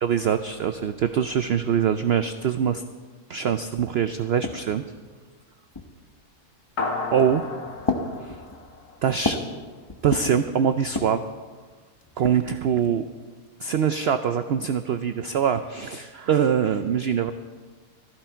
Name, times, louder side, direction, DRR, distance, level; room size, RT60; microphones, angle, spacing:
voice 1, 0.0-2.8 3.3-4.8 7.1-7.5 8.2-8.3 9.0-9.4 10.0-11.2 12.2-13.0 13.6-17.3, right 8 dB, 75° right, 10 dB, 0.5 m, -23 dB
sound 1, 3.4-3.5 3.7-4.9 5.7-6.2 7.0-7.4 7.8-9.6 9.9-10.4 10.8-11.3 12.0-13.0, left 2 dB, 20° left, 0.7 m, -32 dB
sound 2, 6.8-9.5, left 3 dB, 70° left, 2.0 m, -33 dB
15.5 x 13.5 x 4.5 m, 1.4 s
omnidirectional pair, 1.7 m